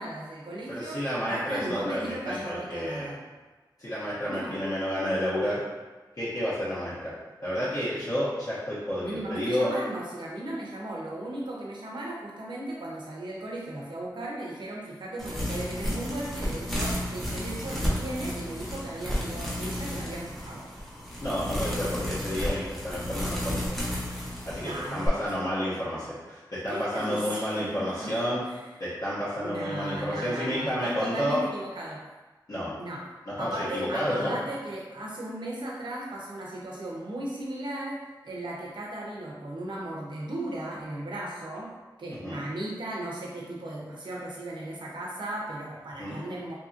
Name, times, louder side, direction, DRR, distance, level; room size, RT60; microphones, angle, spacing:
voice 1, 0.0-3.2 4.3-4.5 9.0-20.7 24.6-25.4 26.7-28.1 28.5-28.6 29.4-32.0 32.8-33.0 33.4-38.0 38.2-41.7 42.0-46.6, right 1 dB, 80° right, -3 dB, 0.7 m, -36 dB
voice 2, 0.7-3.1 3.8-5.6 6.2-7.1 7.4-9.8 21.2-23.8 24.4-28.4 28.8-31.4 32.5-32.8 33.3-34.4 42.2-42.4 46.0-46.2, equal, 50° left, -11 dB, 0.9 m, -30 dB
sound 1, 15.2-25.1, equal, ahead, 0.7 m, -32 dB
2.8 x 2.7 x 2.4 m, 1.3 s
wide cardioid pair, 90°, 8 cm